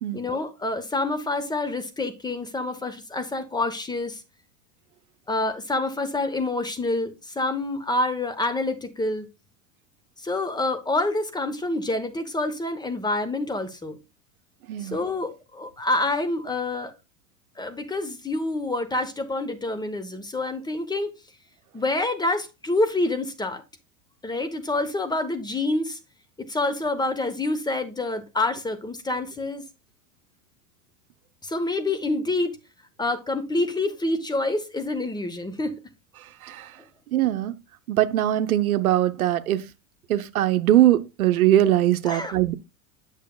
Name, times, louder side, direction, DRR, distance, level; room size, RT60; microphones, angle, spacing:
voice 1, 0.1-4.2 5.3-9.3 10.2-14.0 14.8-16.9 17.6-21.1 21.7-23.6 24.2-26.0 26.5-29.6 31.4-32.6 33.0-35.7 42.0-42.4, left 2 dB, 10° left, 0.9 m, -27 dB
voice 2, 37.1-37.5 37.9-39.6 40.1-42.5, right 13 dB, 85° right, 0.8 m, -21 dB
8.3 x 6.4 x 2.3 m
hypercardioid pair, 105°, 42 cm